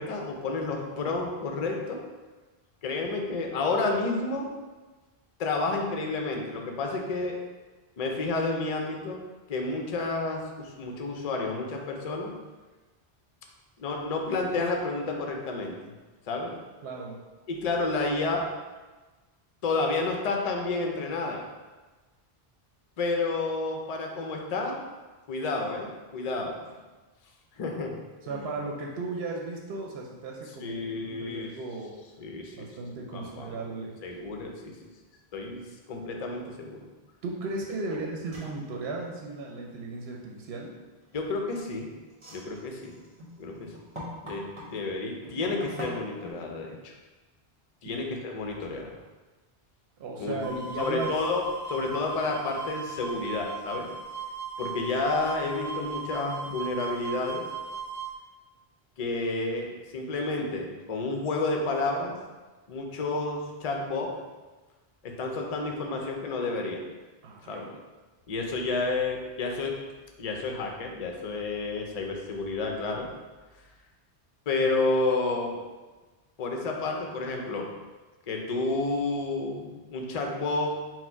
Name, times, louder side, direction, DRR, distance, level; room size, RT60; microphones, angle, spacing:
voice 1, 0.0-2.0 2.8-4.5 5.4-7.4 8.0-9.2 9.5-12.3 13.8-15.8 16.3-16.5 17.5-18.5 19.6-21.4 23.0-24.8 25.3-26.8 27.6-28.0 28.3-28.5 30.6-31.5 32.2-32.7 33.1-33.6 34.0-34.7 35.3-35.6 35.9-36.8 41.1-41.9 42.3-43.0 43.4-43.7 44.2-46.9 47.8-48.9 50.2-50.5 50.8-51.4 51.7-53.9 54.6-57.5 59.0-62.1 62.7-64.1 65.0-66.8 67.4-67.7 68.3-69.7 70.2-73.1 74.5-75.6 76.4-77.7 78.3-80.7, left 3 dB, 45° left, 1 dB, 0.5 m, -30 dB
voice 2, 16.8-17.2 28.2-31.9 32.5-34.2 37.2-40.7 47.8-48.1 50.0-51.1 67.2-67.7, right 3 dB, 75° right, -1 dB, 0.8 m, -36 dB
sound 1, 37.9-38.0 38.3-38.6 41.0-41.5 42.1-44.7 45.2-46.3, equal, 30° right, 1.0 m, -42 dB
sound 2, 50.4-58.1, right 4 dB, 50° right, 0.5 m, -37 dB
4.3 x 2.1 x 4.4 m, 1.2 s
omnidirectional pair, 1.1 m